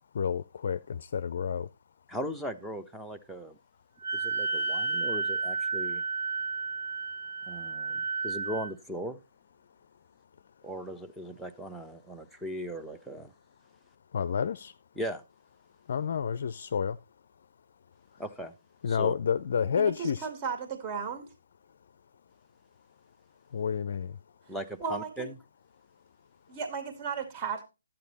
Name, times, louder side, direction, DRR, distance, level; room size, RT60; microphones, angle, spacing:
voice 1, 0.2-0.8 1.1-1.7 14.1-14.7 15.9-17.0 18.8-20.3 23.5-24.1, left 7 dB, 50° left, 0.5 m, -29 dB
voice 2, 2.1-3.6 4.1-6.0 7.5-9.2 10.6-13.3 15.0-15.2 18.2-18.5 18.9-19.1 24.5-25.3, equal, ahead, 0.9 m, -38 dB
Wind instrument woodwind instrument, 4.0-8.7, right 4 dB, 55° right, 2.6 m, -32 dB
voice 3, 19.8-21.2 24.8-25.1 26.5-27.6, right 6 dB, 25° right, 2.3 m, -34 dB
12.0 x 8.9 x 4.1 m
hypercardioid pair, 150°, 0 cm